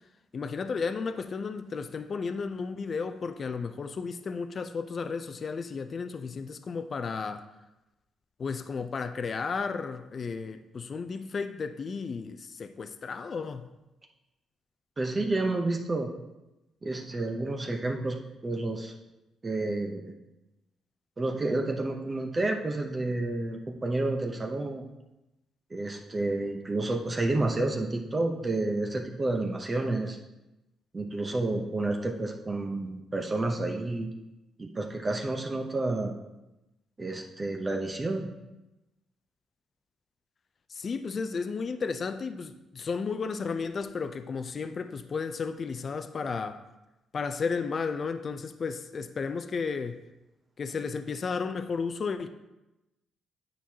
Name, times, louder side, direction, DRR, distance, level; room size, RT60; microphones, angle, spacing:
voice 1, 0.3-7.4 8.4-13.7 40.7-46.6 47.1-50.0 50.6-52.3, left 5 dB, 45° left, 9 dB, 0.4 m, -33 dB
voice 2, 15.0-16.1 16.8-18.9 19.4-20.1 21.2-24.9 25.7-30.2 30.9-34.1 34.6-36.1 37.0-38.3, right 2 dB, 25° right, 2 dB, 0.7 m, -30 dB
9.1 x 4.4 x 2.8 m, 0.98 s
cardioid pair, 90°, 0 cm